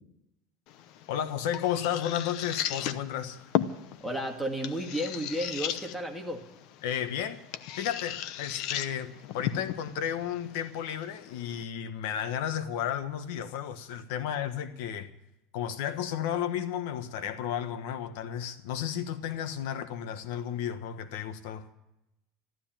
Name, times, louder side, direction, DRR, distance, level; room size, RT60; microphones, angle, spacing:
sound 1, 0.7-11.6, left 11 dB, 55° left, 0.8 m, -37 dB
voice 1, 1.1-3.4 6.8-7.4 7.8-15.1 15.5-21.7, left 9 dB, 75° left, 1.3 m, -33 dB
voice 2, 4.0-6.4, equal, ahead, 2.0 m, -33 dB
14.0 x 12.5 x 7.4 m
cardioid pair, 155°, 0 cm